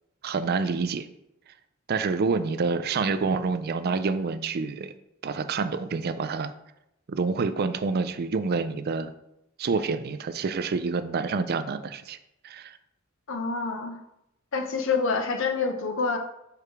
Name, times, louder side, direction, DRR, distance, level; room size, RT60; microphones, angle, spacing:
voice 1, 0.2-1.1 1.9-4.9 5.2-6.5 7.1-9.1 9.6-12.2 12.4-12.8, right 4 dB, 50° right, 12 dB, 0.4 m, -27 dB
voice 2, 13.3-14.0 14.5-16.2, left 4 dB, 70° left, 5 dB, 0.8 m, -27 dB
4.8 x 4.8 x 4.8 m, 0.85 s
head